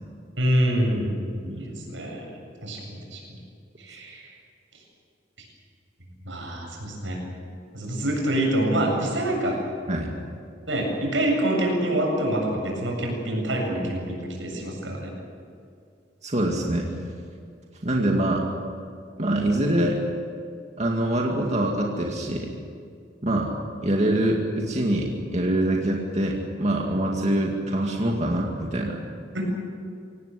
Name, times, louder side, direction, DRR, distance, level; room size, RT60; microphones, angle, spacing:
voice 1, 0.4-1.1 1.5-3.2 3.8-4.3 6.2-7.2 7.7-9.6 10.7-15.1 29.3-29.5, right 1 dB, 90° right, 0 dB, 7.8 m, -26 dB
voice 2, 16.2-16.9 17.8-18.4 19.2-20.0 20.8-22.5 23.2-23.5 23.8-29.0, right 1 dB, 40° right, -1 dB, 2.3 m, -24 dB
25.5 x 18.0 x 8.6 m, 2.3 s
head